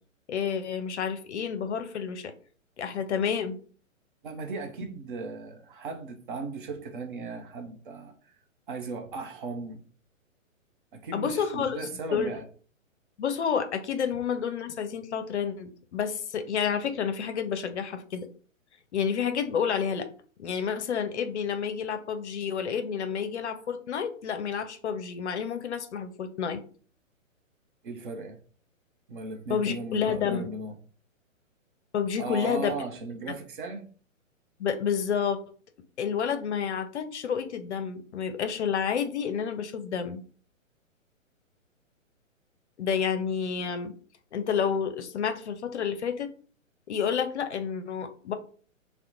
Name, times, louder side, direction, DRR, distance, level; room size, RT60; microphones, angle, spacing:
voice 1, 0.3-2.3 2.8-3.6 11.1-11.8 12.1-12.3 13.2-18.3 18.9-20.1 20.4-26.6 29.5-30.5 31.9-32.7 34.6-35.4 36.0-40.2 42.8-43.9 44.3-46.3 46.9-48.3, left 7 dB, 60° left, 0.5 m, -29 dB
voice 2, 4.2-8.1 8.7-9.8 10.9-12.4 27.8-28.4 29.1-30.7 32.2-33.9, right 3 dB, 40° right, 0.6 m, -37 dB
2.8 x 2.1 x 3.7 m
figure-of-eight pair, 130°, 40 cm